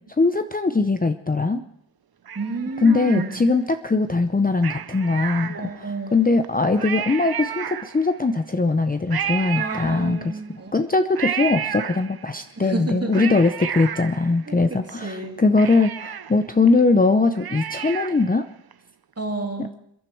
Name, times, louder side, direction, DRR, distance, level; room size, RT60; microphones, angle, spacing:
voice 1, 0.2-1.6 2.8-10.3 10.7-18.4 19.6-19.7, left 3 dB, 20° left, 8 dB, 0.6 m, -21 dB
voice 2, 2.3-3.4 5.5-6.2 9.6-10.7 12.6-13.3 14.5-15.4 19.2-19.7, right 3 dB, 35° right, 1 dB, 3.1 m, -30 dB
Cat, 2.3-3.7 4.6-6.0 6.4-6.5 6.7-8.3 9.1-10.5 11.1-12.4 12.9-14.9 15.2-15.3 15.6-18.4 18.7-18.8, right 8 dB, 55° right, 0.7 m, -32 dB
28.0 x 11.0 x 4.5 m, 0.74 s
wide cardioid pair, 120°, 44 cm